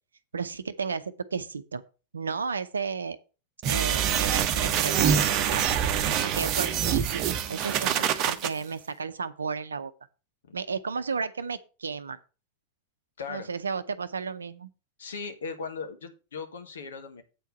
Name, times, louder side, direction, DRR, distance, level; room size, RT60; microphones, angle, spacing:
voice 1, 0.3-1.8 2.1-3.2 3.7-5.7 6.2-9.9 10.5-12.2 13.3-14.7, right 5 dB, 75° right, 12 dB, 0.7 m, -33 dB
sound 1, 3.6-8.5, right 9 dB, 40° right, 0.9 m, -25 dB
voice 2, 13.2-13.5 15.0-17.2, left 5 dB, 65° left, 7 dB, 1.5 m, -38 dB
8.5 x 4.6 x 6.8 m, 0.33 s
figure-of-eight pair, 90°, 0 cm